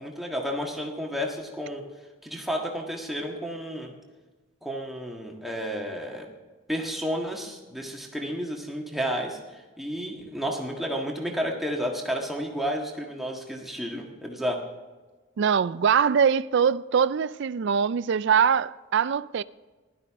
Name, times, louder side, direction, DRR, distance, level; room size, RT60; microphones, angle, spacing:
voice 1, 0.0-1.8 2.2-3.9 4.6-6.3 6.7-14.6, equal, ahead, 1.6 m, -31 dB
voice 2, 15.4-19.4, right 7 dB, 55° right, 0.3 m, -23 dB
16.0 x 12.0 x 3.7 m
head